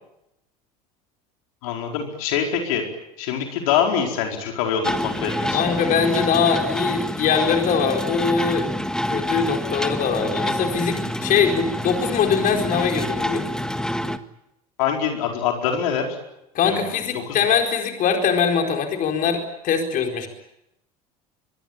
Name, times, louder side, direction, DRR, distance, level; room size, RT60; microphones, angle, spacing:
voice 1, 1.6-2.8 3.2-5.6 14.8-16.1 16.6-16.8 17.1-17.4, left 8 dB, 70° left, 2 dB, 4.6 m, -24 dB
sound 1, 4.8-14.2, left 1 dB, 5° left, 1.6 m, -27 dB
voice 2, 5.5-8.7 9.1-13.5 16.5-20.3, left 6 dB, 50° left, 4 dB, 4.5 m, -22 dB
24.5 x 23.0 x 9.0 m, 0.85 s
hypercardioid pair, 70°, 19 cm